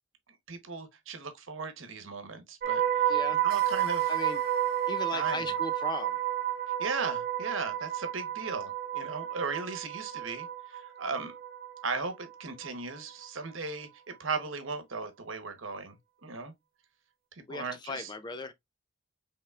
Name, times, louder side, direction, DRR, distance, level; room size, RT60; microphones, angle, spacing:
voice 1, 0.5-3.2 3.4-4.1 5.1-5.5 6.8-11.3 11.8-16.0 16.2-16.5 17.5-18.1, right 4 dB, 70° right, 1.0 m, -37 dB
sound 1, 2.6-12.7 13.0-13.3, right 11 dB, 45° right, 0.6 m, -31 dB
voice 2, 3.1-3.4 4.1-4.4 4.9-6.2 17.5-18.5, left 3 dB, 20° left, 0.4 m, -37 dB
5.7 x 3.5 x 2.4 m
head